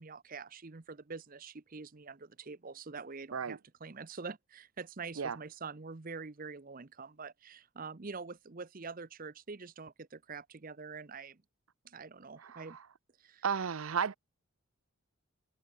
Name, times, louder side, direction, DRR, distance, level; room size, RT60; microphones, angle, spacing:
voice 1, 0.0-11.4 11.8-12.8 13.2-13.4, right 4 dB, 40° right, 0.8 m, -45 dB
voice 2, 12.4-12.8 13.4-14.2, right 6 dB, 70° right, 0.6 m, -34 dB
head